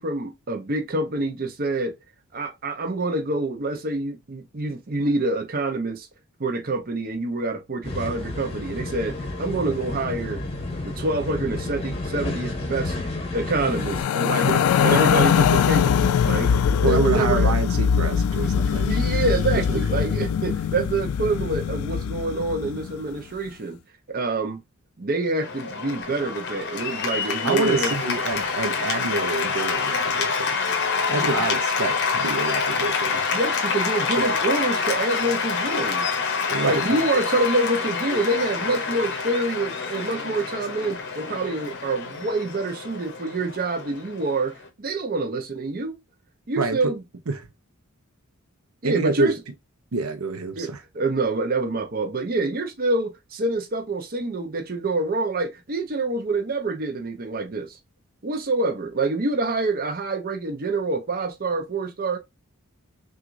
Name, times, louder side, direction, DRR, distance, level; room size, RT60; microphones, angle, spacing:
voice 1, 0.0-1.9 2.3-6.1 6.4-10.4 10.8-13.0 13.3-17.5 18.4-23.8 24.1-24.6 25.0-27.9 31.1-31.2 33.3-36.2 36.6-45.9 46.5-47.0 48.8-49.3 50.6-57.8 58.2-62.2, right 2 dB, 45° right, 0.7 m, -26 dB
sound 1, 7.8-14.0, left 2 dB, 30° left, 1.0 m, -31 dB
sound 2, 13.7-23.0, left 7 dB, 85° left, 0.3 m, -22 dB
voice 2, 16.8-18.9 27.4-30.5 31.1-33.2 34.2-34.3 36.5-37.0 46.6-46.8 47.3-47.5 48.8-49.3 49.9-50.8, right 3 dB, 80° right, 0.6 m, -26 dB
Cheering / Applause, 25.4-44.7, left 5 dB, 55° left, 0.7 m, -27 dB
5.9 x 2.5 x 2.5 m
head